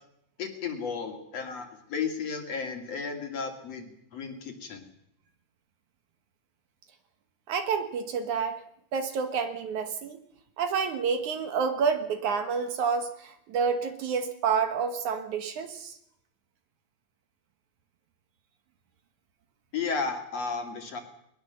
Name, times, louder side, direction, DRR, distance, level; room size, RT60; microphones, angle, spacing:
voice 1, 0.4-4.8 19.7-21.0, left 5 dB, 50° left, 4 dB, 3.2 m, -33 dB
voice 2, 7.5-8.6 8.9-10.2 10.6-16.0, right 6 dB, 65° right, 7 dB, 2.5 m, -29 dB
21.0 x 20.0 x 6.9 m, 0.75 s
omnidirectional pair, 4.0 m